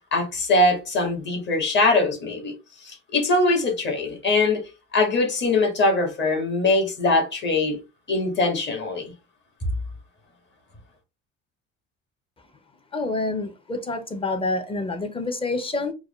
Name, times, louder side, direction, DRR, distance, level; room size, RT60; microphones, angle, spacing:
voice 1, 0.1-2.5 2.8-4.6 4.9-7.8 8.1-9.1, left 2 dB, 40° left, 1.6 m, -22 dB
voice 2, 12.9-15.9, left 2 dB, 20° left, 0.7 m, -27 dB
4.7 x 2.2 x 3.1 m
cardioid pair, 135°, 29 cm